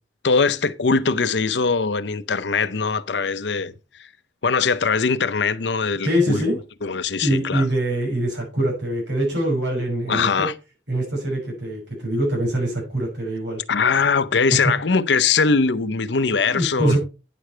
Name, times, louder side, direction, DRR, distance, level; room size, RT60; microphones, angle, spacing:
voice 1, 0.2-3.7 4.0-4.1 4.4-6.4 6.8-7.7 10.1-10.5 13.7-17.0, left 5 dB, 75° left, 0.7 m, -21 dB
voice 2, 6.0-6.6 7.2-10.5 10.9-13.6 16.2-17.0, right 1 dB, 75° right, 5.9 m, -24 dB
10.0 x 6.7 x 4.4 m
head